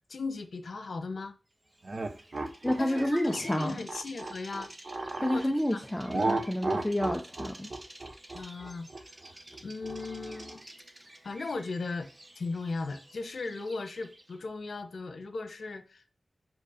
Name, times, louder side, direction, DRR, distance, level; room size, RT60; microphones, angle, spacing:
voice 1, 0.1-1.3 2.8-4.7 5.2-5.8 8.3-9.1 9.6-10.6 11.2-12.1 12.4-16.0, left 3 dB, 75° left, 1.0 m, -37 dB
Bird vocalization bird call bird song, 1.7-14.4, right 1 dB, 25° right, 1.3 m, -51 dB
sound 1, 1.8-5.5 6.1-10.6, right 2 dB, 45° right, 1.0 m, -34 dB
voice 2, 2.6-3.7 5.2-7.7, left 1 dB, 5° left, 0.8 m, -29 dB
6.0 x 5.2 x 5.1 m
wide cardioid pair, 115°, 0 cm